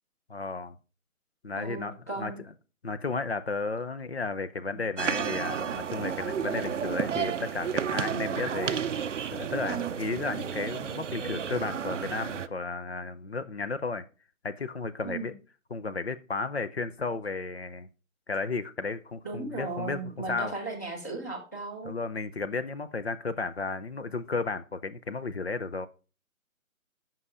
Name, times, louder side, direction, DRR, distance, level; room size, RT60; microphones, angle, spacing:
voice 1, 0.3-0.8 1.4-2.3 2.8-8.8 9.3-14.0 14.4-15.3 15.7-17.9 18.3-20.5 21.8-25.9, left 4 dB, 50° left, 0.6 m, -33 dB
voice 2, 1.6-2.4 4.6-4.9 9.7-9.9 15.0-15.3 19.2-22.0, right 3 dB, 10° left, 0.9 m, -36 dB
sound 1, 5.0-12.5, right 7 dB, 60° right, 0.5 m, -32 dB
7.6 x 5.6 x 5.0 m
hypercardioid pair, 175°, 42 cm